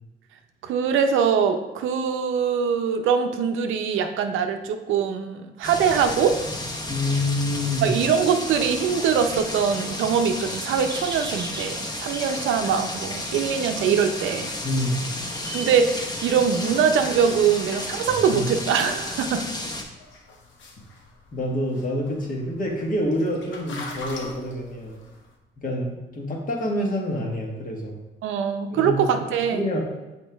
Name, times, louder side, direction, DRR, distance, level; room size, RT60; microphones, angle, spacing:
voice 1, 0.6-6.4 7.8-14.5 15.5-19.4 28.2-29.6, right 7 dB, 85° right, 6 dB, 0.6 m, -23 dB
sound 1, 5.6-19.8, left 1 dB, 20° left, 0.9 m, -32 dB
voice 2, 6.9-7.9 14.6-15.0 18.1-18.4 21.3-24.9 25.6-28.0 28.7-29.0 29.5-29.8, left 1 dB, 45° left, 0 dB, 1.5 m, -27 dB
sound 2, 9.5-17.8, right 2 dB, 20° right, 0.9 m, -42 dB
sound 3, 20.0-25.3, left 2 dB, 70° left, 1.0 m, -41 dB
6.3 x 4.6 x 3.4 m, 1.1 s
cardioid pair, 90°, 20 cm